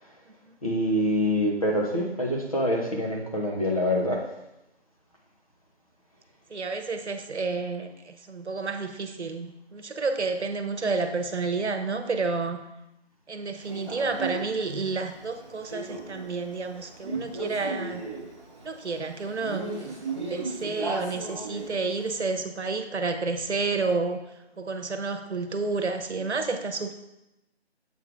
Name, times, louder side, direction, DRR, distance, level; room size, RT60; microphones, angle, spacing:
voice 1, 0.6-4.2, equal, 30° left, -2 dB, 1.0 m, -25 dB
voice 2, 6.5-12.6 13.3-18.0 18.6-24.2 24.6-26.9, right 4 dB, 85° right, 7 dB, 1.0 m, -30 dB
Male speech man speaking, 13.7-22.2, right 3 dB, 25° right, 1.2 m, -36 dB
7.7 x 3.8 x 4.7 m, 0.91 s
figure-of-eight pair, 175°, 33 cm